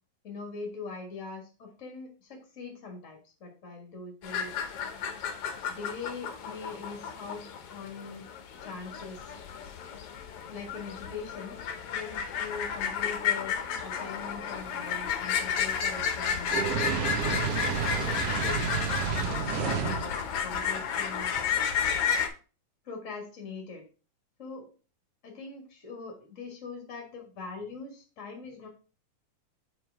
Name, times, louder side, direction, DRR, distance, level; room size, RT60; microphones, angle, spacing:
voice 1, 0.2-4.5 5.7-8.2 8.6-9.3 10.5-11.6 11.9-13.5 13.8-16.6 17.2-21.3 22.8-23.8 24.4-24.7 25.2-28.7, left 4 dB, 35° left, 2 dB, 1.3 m, -42 dB
sound 1, 4.2-22.3, left 7 dB, 70° left, 1.4 m, -32 dB
Fire, 16.5-20.1, right 7 dB, 70° right, 1.5 m, -30 dB
5.1 x 4.9 x 4.6 m, 0.36 s
omnidirectional pair, 3.5 m